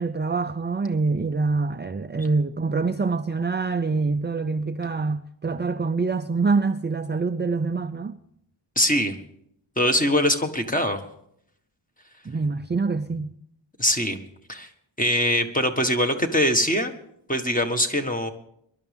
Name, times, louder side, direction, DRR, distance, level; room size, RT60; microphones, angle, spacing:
voice 1, 0.0-8.2 12.3-13.3, right 4 dB, 25° right, 0.5 m, -25 dB
voice 2, 8.7-9.2 9.8-11.0 13.8-14.2 14.5-14.7 15.0-16.9 17.3-18.3, equal, 15° left, 1.6 m, -22 dB
23.0 x 12.0 x 3.6 m
wide cardioid pair, 110°, 47 cm